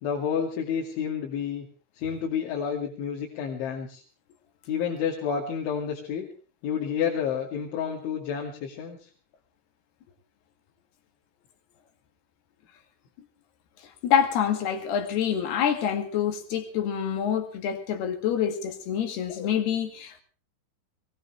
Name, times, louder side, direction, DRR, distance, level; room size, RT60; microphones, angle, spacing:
voice 1, 0.0-1.7 2.0-4.0 4.7-6.3 6.6-9.0, left 7 dB, 85° left, 4.8 m, -30 dB
voice 2, 14.0-20.2, left 8 dB, 65° left, 4.0 m, -26 dB
22.0 x 19.0 x 3.3 m
omnidirectional pair, 5.3 m